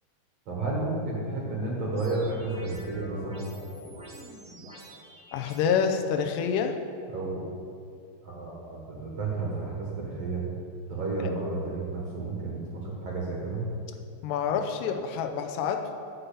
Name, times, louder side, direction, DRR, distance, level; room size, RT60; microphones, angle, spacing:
voice 1, 0.5-3.5 7.1-7.5 8.2-10.4 10.9-13.7, right 3 dB, 50° right, -4 dB, 2.0 m, -32 dB
sound 1, 2.0-5.6, equal, 10° right, 0.4 m, -47 dB
voice 2, 5.3-6.8 14.2-15.9, left 7 dB, 85° left, 5 dB, 2.8 m, -27 dB
11.0 x 5.6 x 8.6 m, 2.5 s
omnidirectional pair, 4.9 m